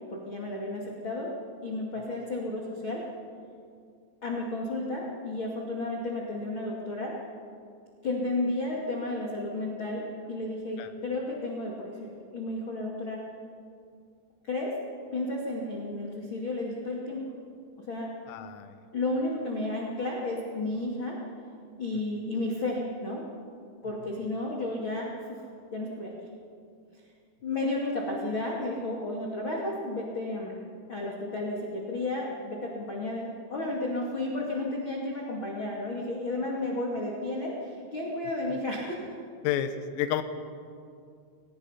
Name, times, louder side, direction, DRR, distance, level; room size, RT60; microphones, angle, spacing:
voice 1, 0.1-1.3 1.6-3.0 4.2-7.1 8.0-13.3 14.4-14.7 15.1-17.2 17.9-18.1 18.9-21.2 21.8-23.3 23.8-25.5 25.7-26.1 27.4-30.5 30.9-39.2, left 2 dB, 40° left, -2 dB, 1.8 m, -32 dB
voice 2, 18.3-18.7 39.4-40.2, left 10 dB, 80° left, 9 dB, 3.7 m, -30 dB
23.5 x 19.5 x 5.7 m, 2.3 s
omnidirectional pair, 5.9 m